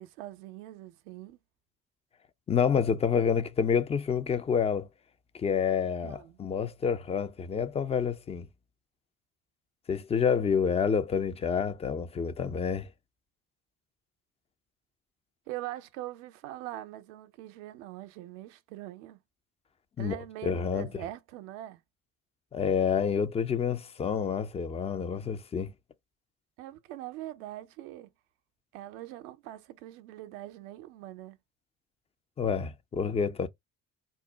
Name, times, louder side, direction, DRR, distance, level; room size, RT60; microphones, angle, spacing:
voice 1, 0.0-1.4 6.0-6.4 15.5-19.2 20.0-21.8 26.6-28.1 28.7-31.4, right 14 dB, 65° right, 0.6 m, -42 dB
voice 2, 2.5-4.9 5.3-8.5 9.9-12.9 20.0-20.2 20.4-20.9 22.5-25.7 32.4-33.5, left 6 dB, 15° left, 0.3 m, -28 dB
2.6 x 2.1 x 3.8 m
figure-of-eight pair, 50°, 43 cm